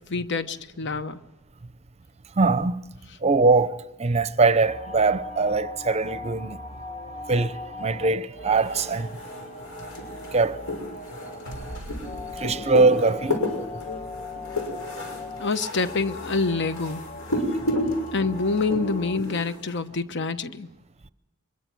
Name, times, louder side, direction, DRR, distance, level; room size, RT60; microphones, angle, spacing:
voice 1, 0.1-1.2 15.4-17.0 18.1-20.7, left 4 dB, 55° left, 1.0 m, -26 dB
voice 2, 2.4-2.8 3.2-6.6 7.3-9.1 10.3-10.6 12.4-13.5, right 3 dB, 30° right, 0.7 m, -22 dB
sound 1, 4.6-19.2, left 2 dB, 30° left, 1.6 m, -39 dB
sound 2, 8.5-19.8, left 1 dB, 75° left, 6.2 m, -32 dB
25.0 x 22.0 x 6.1 m
head